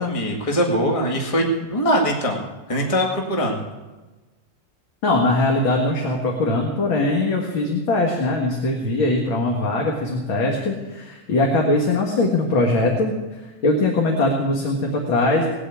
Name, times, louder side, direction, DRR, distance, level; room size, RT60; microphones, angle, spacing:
voice 1, 0.0-3.6, equal, 15° left, 0 dB, 1.9 m, -22 dB
voice 2, 5.0-15.5, left 2 dB, 70° left, 0 dB, 2.5 m, -21 dB
19.5 x 8.0 x 8.5 m, 1.2 s
omnidirectional pair, 2.2 m